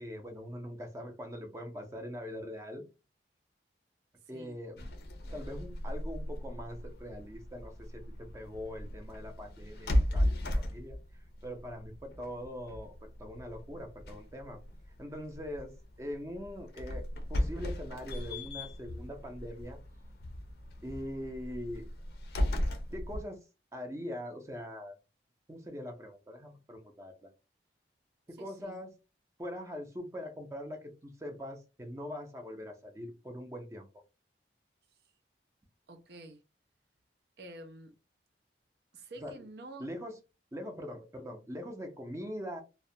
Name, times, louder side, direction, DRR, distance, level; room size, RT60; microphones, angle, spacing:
voice 1, 0.0-2.8 4.3-4.9 5.3-10.3 10.6-14.6 15.0-19.8 20.8-21.9 22.9-23.4 23.7-25.0 25.5-27.3 28.3-28.9 29.4-33.9 39.2-39.5 39.8-40.2 40.5-42.6, equal, 15° right, 0.5 m, -42 dB
sound 1, 4.8-23.2, left 1 dB, 60° left, 0.4 m, -36 dB
voice 2, 28.4-28.8 35.9-36.4 37.4-38.0 38.9-39.9, right 2 dB, 65° right, 0.5 m, -48 dB
2.2 x 2.1 x 2.6 m
head